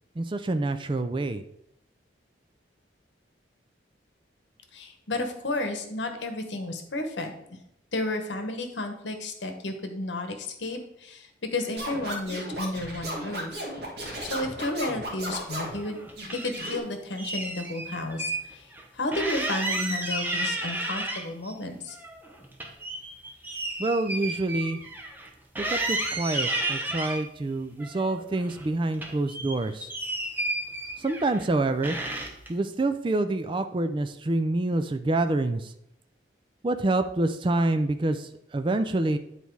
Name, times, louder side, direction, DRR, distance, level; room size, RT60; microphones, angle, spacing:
voice 1, 0.2-1.4 23.8-24.8 25.6-29.9 31.0-32.0 32.5-35.7 36.6-39.2, right 2 dB, 25° right, 9 dB, 0.4 m, -27 dB
voice 2, 4.7-7.3 7.9-13.5 14.2-16.0 16.3-18.7 18.9-22.0, left 2 dB, 70° left, 6 dB, 1.1 m, -32 dB
Scratching (performance technique), 11.8-15.8 16.2-16.8, right 1 dB, 60° right, 1.8 m, -35 dB
sound 1, 15.7-16.7 17.2-18.4 18.7-18.8 19.1-21.5 21.9-25.3 25.6-27.2 27.8-28.7 28.9-31.5 31.8-32.5, right 1 dB, 10° right, 0.8 m, -32 dB
9.2 x 4.1 x 4.6 m, 0.77 s
head